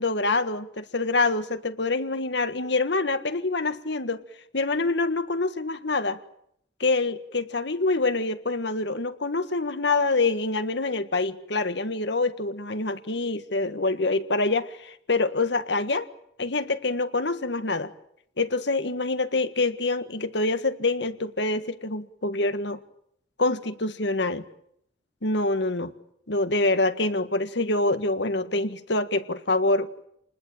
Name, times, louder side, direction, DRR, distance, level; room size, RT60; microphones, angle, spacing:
voice 1, 0.0-4.2 4.5-6.2 6.8-16.1 16.4-17.9 18.4-22.8 23.4-24.4 25.2-25.9 26.3-29.9, left 3 dB, 65° left, 10 dB, 1.7 m, -26 dB
28.5 x 20.5 x 8.9 m, 0.73 s
head